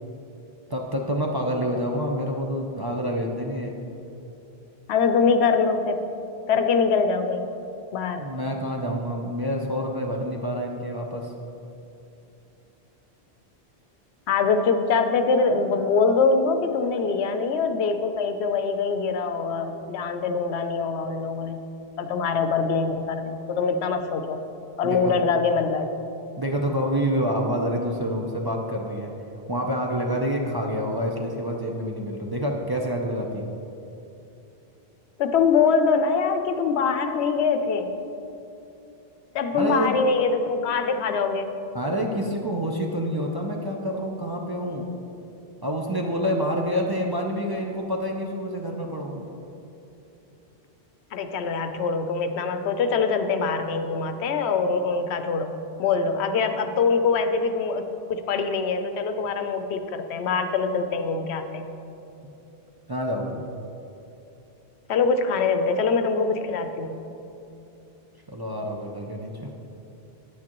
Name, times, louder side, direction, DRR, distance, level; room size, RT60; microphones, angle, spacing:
voice 1, 0.7-3.7 8.2-11.3 24.8-25.1 26.4-29.1 29.5-33.5 39.5-40.0 41.7-44.9 45.6-49.3 62.2-62.3 62.9-63.4 68.3-69.5, equal, 30° right, 0 dB, 0.5 m, -27 dB
voice 2, 4.9-6.1 6.5-7.5 7.9-8.2 14.3-21.6 22.0-24.4 24.8-25.9 35.2-37.9 39.3-41.5 51.1-55.5 55.8-61.7 64.9-67.0, left 5 dB, 90° left, 8 dB, 0.9 m, -23 dB
9.6 x 8.5 x 3.0 m, 2.8 s
omnidirectional pair, 1.1 m